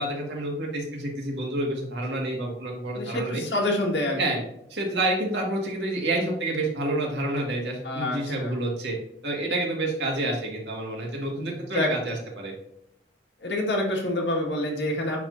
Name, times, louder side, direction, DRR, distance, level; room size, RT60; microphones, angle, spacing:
voice 1, 0.0-3.4 4.2-4.4 4.7-9.0 9.2-12.5, right 1 dB, 80° right, -1 dB, 2.0 m, -28 dB
voice 2, 2.9-4.4 7.8-8.6 11.4-11.9 13.4-15.2, left 1 dB, 75° left, -1 dB, 1.8 m, -27 dB
10.5 x 3.6 x 2.7 m, 0.77 s
head